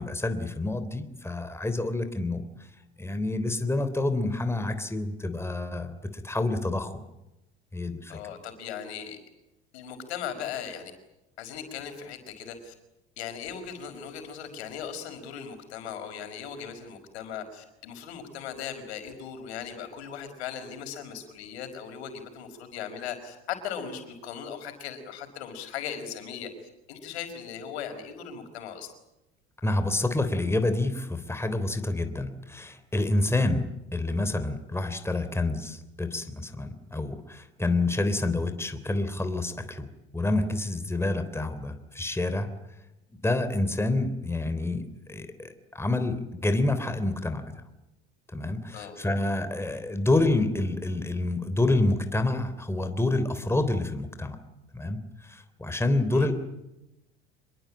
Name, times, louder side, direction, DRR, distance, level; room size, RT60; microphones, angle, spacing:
voice 1, 0.0-2.5 3.0-6.0 6.2-7.0 7.7-8.2 29.6-39.9 40.1-42.5 43.2-44.8 45.1-47.4 48.3-54.4 54.7-56.3, left 2 dB, 10° left, 9 dB, 3.5 m, -28 dB
voice 2, 8.1-9.2 9.7-10.9 11.4-12.7 13.2-26.5 26.9-28.9 48.7-49.0 56.1-56.3, left 8 dB, 80° left, 7 dB, 5.4 m, -38 dB
27.0 x 22.0 x 8.8 m, 0.93 s
hypercardioid pair, 75°, 32 cm